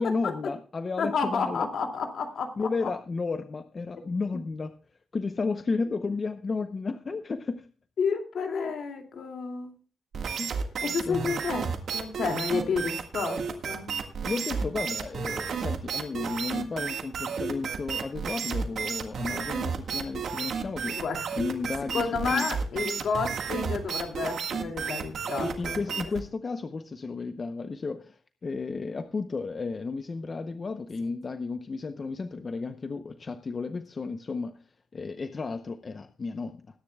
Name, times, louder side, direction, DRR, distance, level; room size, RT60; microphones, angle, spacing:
voice 1, 0.0-1.7 2.6-4.7 5.1-7.7 10.4-10.5 10.8-11.4 14.2-21.0 21.3-22.4 25.4-34.5 34.9-36.6, left 4 dB, 35° left, 9 dB, 0.7 m, -33 dB
voice 2, 1.0-2.9 8.0-9.7 10.8-13.9 20.9-21.3 21.9-25.8, left 5 dB, 65° left, 4 dB, 2.4 m, -30 dB
sound 1, 10.1-26.2, right 6 dB, 60° right, 1.6 m, -32 dB
20.5 x 10.5 x 2.3 m, 0.37 s
wide cardioid pair, 145°, 0 cm